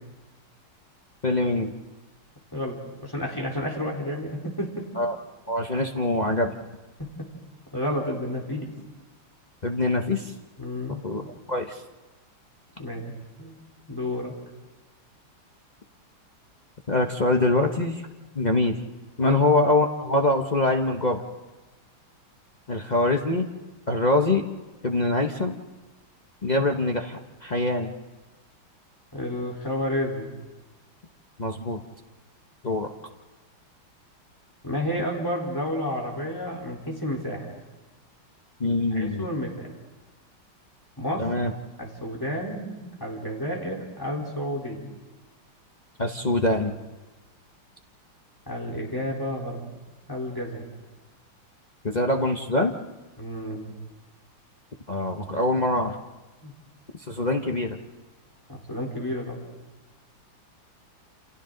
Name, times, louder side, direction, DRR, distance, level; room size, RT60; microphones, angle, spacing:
voice 1, 1.2-1.7 5.0-5.2 5.5-6.5 9.6-10.3 11.0-11.8 16.9-18.0 18.3-18.8 19.2-21.2 22.7-23.5 23.9-24.4 24.8-25.5 26.4-27.9 31.4-31.8 32.6-32.9 38.6-39.2 41.2-41.5 46.0-46.7 51.8-52.8 54.9-55.9 57.1-57.8, left 2 dB, 45° left, 2 dB, 0.5 m, -24 dB
voice 2, 2.5-4.9 7.0-7.3 7.7-8.7 10.6-11.0 12.8-13.1 13.4-13.6 13.9-14.3 19.2-19.4 29.1-30.3 34.6-37.6 38.6-39.7 41.0-41.5 41.8-44.9 48.5-49.6 50.1-50.7 53.2-53.7 56.4-56.5 58.5-59.4, left 1 dB, 10° left, -1 dB, 3.8 m, -31 dB
28.5 x 28.0 x 3.9 m, 1.2 s
omnidirectional pair, 2.3 m